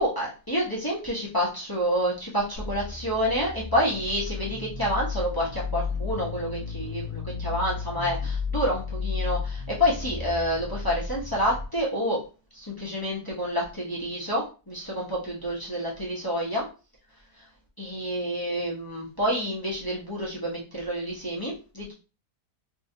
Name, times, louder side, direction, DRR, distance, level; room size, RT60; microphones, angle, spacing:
voice 1, 0.0-12.2 12.5-16.7 17.8-21.9, equal, 20° left, -6 dB, 0.7 m, -28 dB
sound 1, 2.6-11.7, left 4 dB, 25° right, 1.3 m, -33 dB
3.1 x 2.8 x 2.7 m, 0.33 s
omnidirectional pair, 1.7 m